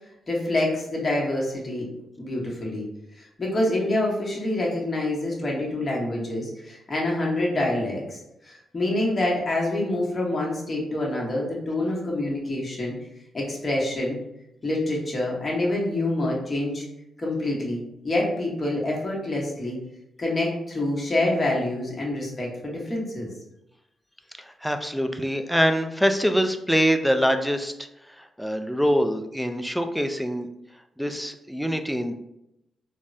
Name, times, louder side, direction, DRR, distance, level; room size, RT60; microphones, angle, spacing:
voice 1, 0.3-1.8 2.2-2.9 3.4-8.2 8.5-12.9 13.3-14.2 14.6-16.8 17.2-17.8 18.0-19.8 20.2-23.3, left 1 dB, 35° left, -3 dB, 1.0 m, -26 dB
voice 2, 24.4-27.7 28.1-30.5 31.0-32.1, equal, ahead, 7 dB, 0.3 m, -24 dB
3.4 x 2.0 x 2.6 m, 0.84 s
cardioid pair, 75°, 0 cm